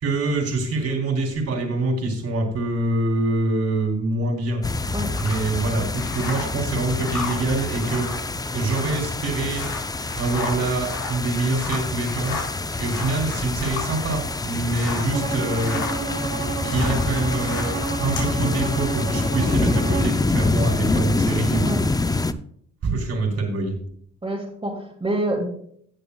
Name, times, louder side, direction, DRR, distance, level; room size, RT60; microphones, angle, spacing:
voice 1, 0.0-4.6 5.2-8.1 8.5-9.7 10.2-12.4 12.8-15.8 16.6-21.8 22.8-23.7, right 2 dB, 55° right, 1 dB, 3.5 m, -25 dB
sound 1, 4.6-22.3, left 2 dB, 15° left, 0.5 m, -26 dB
sound 2, 5.2-15.2 15.4-18.3, left 5 dB, 90° left, 4.0 m, -35 dB
Bowed string instrument, 15.1-20.2, right 5 dB, 85° right, 1.6 m, -31 dB
voice 2, 24.2-25.5, right 1 dB, 20° right, -4 dB, 2.6 m, -26 dB
18.0 x 6.7 x 2.3 m, 0.64 s
cardioid pair, 90°, 30 cm